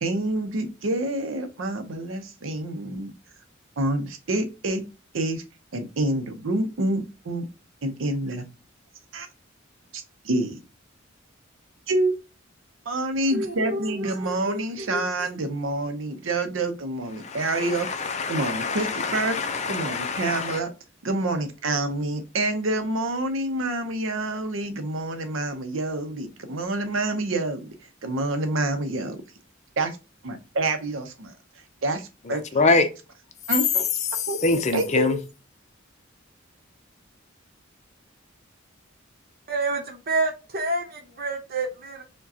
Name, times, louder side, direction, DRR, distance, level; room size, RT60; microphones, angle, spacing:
voice 1, 0.0-3.1 3.8-4.8 5.1-5.4 5.7-7.5 7.8-8.4 9.1-9.3 9.9-10.6 11.9-12.1 12.9-17.9 18.3-19.4 19.7-20.7 21.0-27.7 28.0-29.2 29.8-30.0 30.2-31.3 31.8-32.4 33.5-33.8 34.3-34.4 34.7-35.2, right 2 dB, 75° right, 0.6 m, -27 dB
voice 2, 13.3-15.0 39.5-42.0, right 2 dB, 50° right, 0.9 m, -29 dB
voice 3, 17.2-20.6 32.3-32.9 34.1-35.2, left 3 dB, 35° left, 0.5 m, -25 dB
4.7 x 2.2 x 2.7 m
head